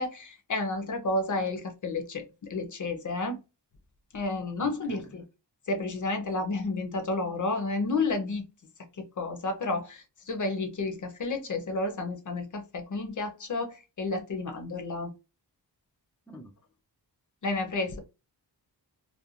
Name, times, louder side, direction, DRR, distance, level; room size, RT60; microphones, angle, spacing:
voice 1, 0.0-3.4 4.1-5.2 5.7-8.5 9.0-15.1 17.4-18.0, left 3 dB, 45° left, 0.6 m, -31 dB
voice 2, 4.6-5.2 16.3-16.5, equal, 5° left, 0.3 m, -47 dB
2.5 x 2.1 x 2.7 m
wide cardioid pair, 125°, 42 cm